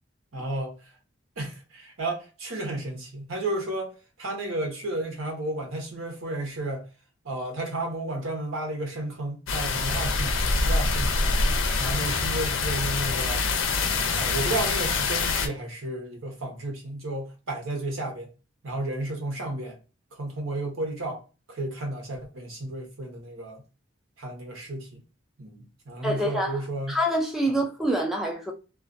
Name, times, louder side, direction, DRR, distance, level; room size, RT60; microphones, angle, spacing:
voice 1, 0.3-0.8 1.4-3.9 4.2-6.8 7.2-11.4 11.8-13.5 14.1-18.3 18.6-19.7 20.1-21.2 21.5-23.6 24.2-25.0 25.4-27.0, right 1 dB, 85° right, 0.9 m, -32 dB
sound 1, 9.5-15.5, left 3 dB, 70° left, 0.4 m, -25 dB
voice 2, 26.0-26.6 26.9-28.5, equal, ahead, 0.3 m, -26 dB
2.3 x 2.3 x 2.5 m
head